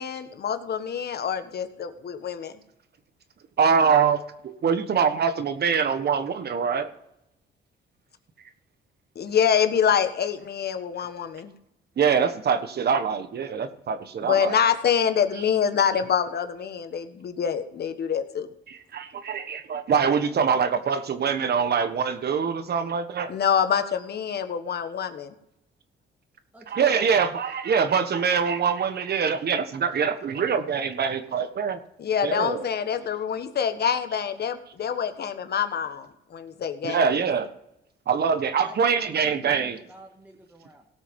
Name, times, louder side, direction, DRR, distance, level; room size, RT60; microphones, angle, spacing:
voice 1, 0.0-2.5 9.1-11.5 14.2-18.5 23.3-25.3 32.0-37.0, left 8 dB, 55° left, 9 dB, 1.3 m, -26 dB
voice 2, 3.6-4.2 4.4-6.9 12.0-14.5 18.7-23.3 26.7-31.8 32.2-32.6 36.8-37.5 38.1-39.8, right 6 dB, 55° right, 10 dB, 1.4 m, -24 dB
voice 3, 26.5-27.1 38.6-40.9, right 1 dB, 5° right, 0 dB, 1.9 m, -49 dB
17.5 x 6.2 x 5.4 m, 0.82 s
cardioid pair, 90°, 20 cm